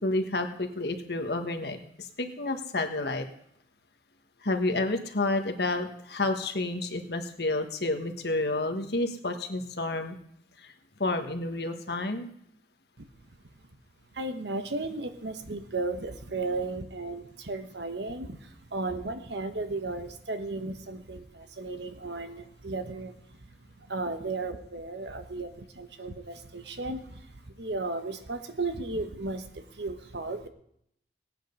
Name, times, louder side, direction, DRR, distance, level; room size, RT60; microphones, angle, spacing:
voice 1, 0.0-3.3 4.4-10.2 10.6-10.7 11.0-12.3, left 2 dB, 65° left, 6 dB, 1.5 m, -30 dB
voice 2, 14.1-30.5, right 3 dB, 80° right, 8 dB, 1.1 m, -35 dB
18.0 x 9.2 x 5.4 m, 0.73 s
head